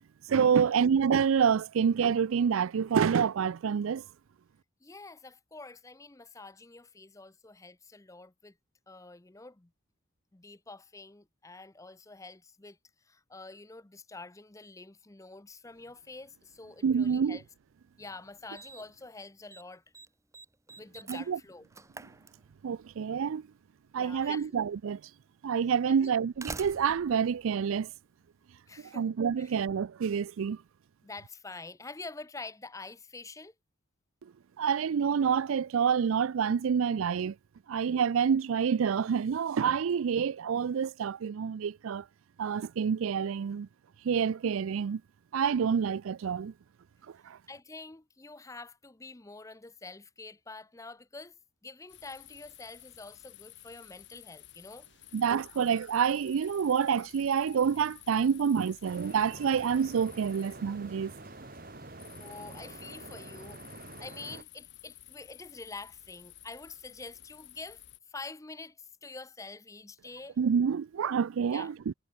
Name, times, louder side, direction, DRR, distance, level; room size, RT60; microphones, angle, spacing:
voice 1, 0.3-4.0 16.8-17.4 21.1-21.4 22.6-23.5 23.9-25.0 25.4-27.9 28.9-30.6 34.6-37.3 37.7-42.0 42.4-43.7 44.0-45.0 45.3-46.5 47.3-47.4 55.1-61.1 70.4-71.9, right 7 dB, 70° right, 0.4 m, -27 dB
voice 2, 4.8-8.6 8.9-9.7 10.3-12.8 13.1-17.4 18.0-19.8 20.8-21.7 24.0-24.6 25.9-26.1 28.7-29.1 29.4-29.6 31.0-33.5 47.5-51.3 51.6-54.9 62.2-67.8 68.1-70.4 71.5-71.7, left 3 dB, 15° left, 0.6 m, -47 dB
Slam, 17.7-17.8 18.6-19.0 19.3-19.6 19.9-22.9 24.0-24.1 25.0-25.1 26.0-28.4, right 3 dB, 15° right, 1.0 m, -46 dB
sound 1, 51.9-68.0, left 14 dB, 55° left, 1.6 m, -53 dB
sound 2, 58.8-64.4, right 2 dB, 45° right, 3.5 m, -47 dB
head